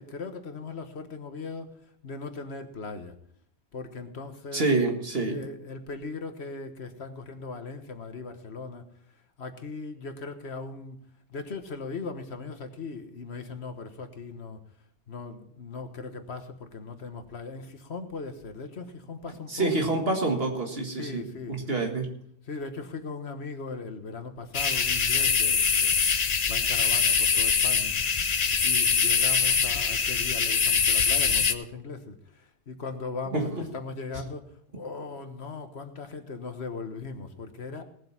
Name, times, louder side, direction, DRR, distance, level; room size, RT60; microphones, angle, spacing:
voice 1, 0.0-3.2 3.7-4.9 5.2-8.9 9.4-11.0 11.3-14.6 15.1-19.9 20.9-21.9 22.4-26.0 26.5-27.9 28.6-37.8, left 4 dB, 70° left, 8 dB, 1.6 m, -39 dB
voice 2, 4.5-5.4 19.5-22.1 33.3-33.7, right 3 dB, 60° right, 2 dB, 2.1 m, -27 dB
sound 1, 24.5-31.5, left 6 dB, 40° left, 0.8 m, -23 dB
18.5 x 7.7 x 5.7 m, 0.67 s
omnidirectional pair, 1.1 m